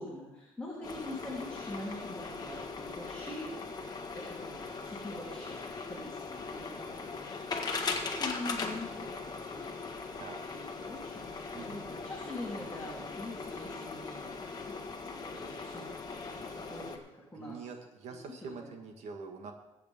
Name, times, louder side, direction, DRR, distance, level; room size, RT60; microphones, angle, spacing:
voice 1, 0.0-3.6 4.1-5.6 5.9-7.4 8.0-9.2 9.5-14.8 15.2-16.0 16.4-17.6 18.1-18.7, left 1 dB, 10° left, -6 dB, 3.2 m, -44 dB
sound 1, 0.8-17.0, left 4 dB, 35° left, 1.5 m, -40 dB
voice 2, 17.3-19.5, right 5 dB, 75° right, 4 dB, 1.7 m, -45 dB
22.5 x 8.3 x 3.6 m, 0.97 s
cardioid pair, 120°, 12 cm